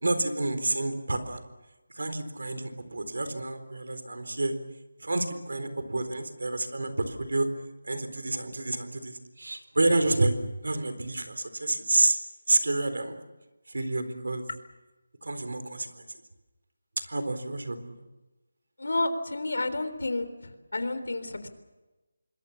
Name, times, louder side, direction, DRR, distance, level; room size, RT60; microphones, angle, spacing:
voice 1, 0.0-1.4 2.0-4.5 5.0-7.5 7.9-10.3 10.6-12.2 12.5-13.1 13.7-14.4 15.2-15.9 17.1-17.8, right 2 dB, 80° right, 9 dB, 4.0 m, -28 dB
voice 2, 18.8-21.5, left 2 dB, 75° left, 10 dB, 3.8 m, -30 dB
26.5 x 21.5 x 7.2 m, 1.1 s
figure-of-eight pair, 175°, 0 cm